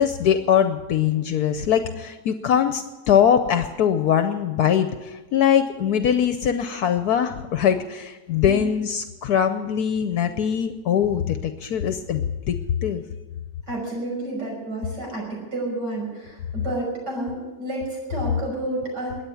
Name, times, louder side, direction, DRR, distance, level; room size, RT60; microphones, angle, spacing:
voice 1, 0.0-12.6 12.8-13.0, left 8 dB, 70° left, 8 dB, 1.2 m, -22 dB
voice 2, 13.7-19.2, right 1 dB, 85° right, -2 dB, 6.5 m, -30 dB
22.0 x 8.9 x 7.0 m, 1.2 s
omnidirectional pair, 1.8 m